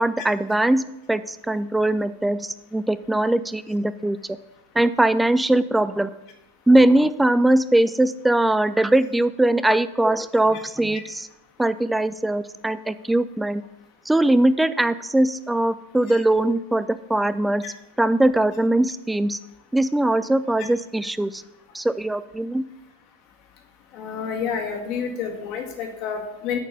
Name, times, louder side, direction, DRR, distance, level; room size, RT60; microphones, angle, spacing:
voice 1, 0.0-4.2 4.8-6.1 6.7-11.3 11.6-13.6 14.1-17.7 18.0-19.4 19.7-21.4 21.7-22.6, right 1 dB, 5° right, 14 dB, 0.4 m, -21 dB
voice 2, 23.9-26.6, left 6 dB, 40° left, 2 dB, 1.7 m, -29 dB
8.6 x 4.5 x 6.7 m, 0.92 s
figure-of-eight pair, 90°, 0 cm